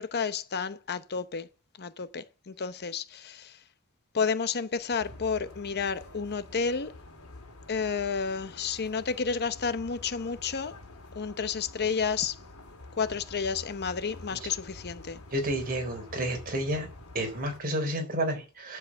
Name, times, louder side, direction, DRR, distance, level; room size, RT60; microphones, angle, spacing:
voice 1, 0.0-1.5 1.8-3.6 4.1-6.9 7.7-10.8 11.1-12.4 13.0-15.2, left 5 dB, 50° left, 0.8 m, -31 dB
sound 1, 5.0-17.6, left 2 dB, 80° left, 3.1 m, -48 dB
voice 2, 15.3-16.9 17.1-18.8, right 1 dB, 40° right, 3.9 m, -30 dB
10.5 x 7.5 x 7.6 m
head